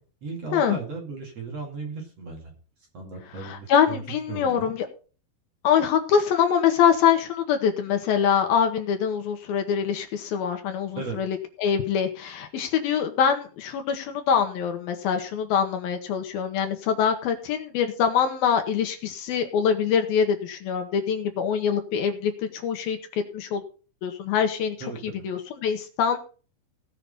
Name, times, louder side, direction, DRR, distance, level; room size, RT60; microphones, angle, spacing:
voice 1, 0.2-2.6 2.9-4.0 4.3-4.7 11.0-11.2 24.8-25.3, right 4 dB, 45° right, 1 dB, 2.8 m, -36 dB
voice 2, 3.4-4.9 5.6-23.6 24.0-24.8 25.0-26.2, left 7 dB, 70° left, 6 dB, 2.8 m, -24 dB
17.5 x 5.9 x 5.4 m, 0.38 s
omnidirectional pair, 4.8 m